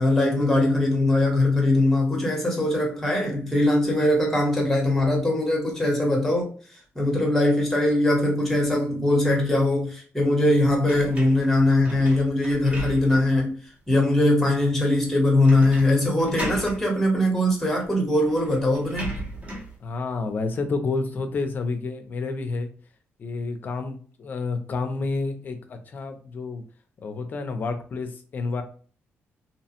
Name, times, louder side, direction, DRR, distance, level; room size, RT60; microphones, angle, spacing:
voice 1, 0.0-6.5 6.9-13.6 13.9-19.1, left 1 dB, 5° left, 0.8 m, -21 dB
sound 1, 10.9-13.4 13.9-14.0 15.4-15.9 16.2-16.8 17.8-17.9 18.3-19.8, right 1 dB, 30° right, 0.7 m, -36 dB
voice 2, 19.8-22.7 23.2-26.6 27.0-28.6, left 3 dB, 40° left, 0.4 m, -29 dB
2.7 x 2.0 x 2.8 m
wide cardioid pair, 170°, 5 cm